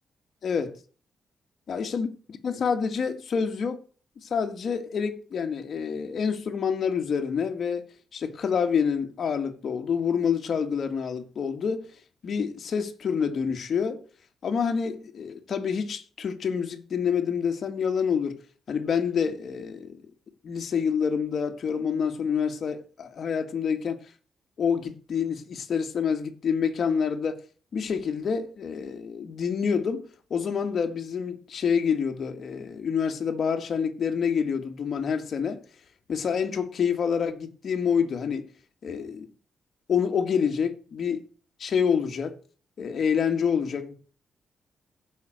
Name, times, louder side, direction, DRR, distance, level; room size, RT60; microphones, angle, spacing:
voice 1, 0.4-0.8 1.7-2.1 2.4-3.8 4.2-7.9 8.1-11.9 12.2-14.0 14.4-18.4 18.7-20.0 20.4-24.0 24.6-27.4 27.7-30.0 30.3-35.6 36.1-38.4 38.8-39.3 39.9-41.2 41.6-42.4 42.8-43.9, left 6 dB, 50° left, 2.1 m, -27 dB
15.0 x 6.0 x 6.5 m
cardioid pair, 135°, 0 cm